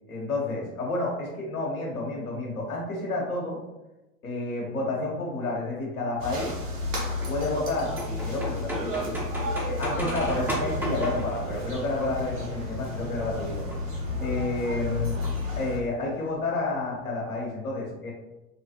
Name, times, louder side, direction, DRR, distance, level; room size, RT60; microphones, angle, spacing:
voice 1, 0.1-3.6 4.2-6.6 7.3-9.3 9.7-15.1 15.6-18.1, left 2 dB, 80° left, -2 dB, 1.1 m, -30 dB
sound 1, 6.2-15.8, left 1 dB, 70° right, 1.1 m, -32 dB
sound 2, 7.2-12.5 13.5-14.0 15.2-15.9 16.2-16.3 16.5-16.6 16.8-17.2, right 1 dB, 5° right, 0.5 m, -37 dB
3.3 x 2.4 x 2.8 m, 0.99 s
figure-of-eight pair, 85°, 42 cm